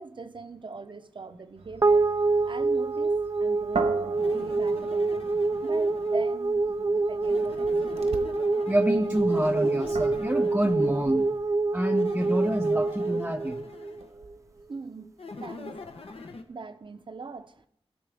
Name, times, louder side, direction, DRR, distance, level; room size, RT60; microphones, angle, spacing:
voice 1, 0.0-2.1 2.5-3.1 3.4-4.0 4.3-5.3 5.6-8.1 14.7-15.1 15.4-15.8 16.5-17.7, right 4 dB, 50° right, 0.7 m, -41 dB
sound 1, 1.5-8.4 8.9-14.6, right 4 dB, 75° right, 1.2 m, -41 dB
sound 2, 1.8-14.3, right 3 dB, 30° right, 0.3 m, -26 dB
sound 3, 4.1-6.3 7.2-11.4 11.9-14.1 15.2-16.4, left 3 dB, 65° left, 1.0 m, -43 dB
voice 2, 8.7-11.3 11.7-13.6, right 1 dB, 10° right, 0.7 m, -27 dB
17.0 x 6.6 x 3.5 m
wide cardioid pair, 90°, 11 cm